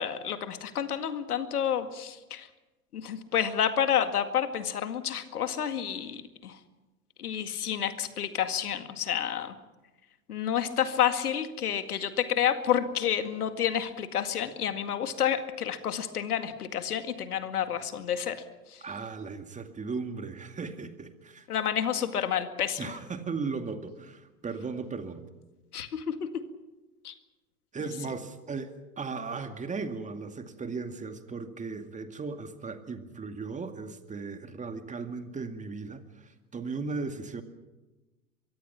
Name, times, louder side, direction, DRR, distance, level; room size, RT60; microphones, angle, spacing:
voice 1, 0.0-2.5 2.9-6.6 7.2-9.6 10.3-18.4 18.7-18.8 21.5-23.0 25.7-26.4 27.0-27.1 27.8-27.9, left 9 dB, 80° left, 9 dB, 2.1 m, -29 dB
voice 2, 18.8-21.5 22.8-25.2 27.7-37.4, right 4 dB, 15° right, 8 dB, 2.2 m, -37 dB
23.5 x 23.5 x 5.9 m, 1.1 s
hypercardioid pair, 100°, 44 cm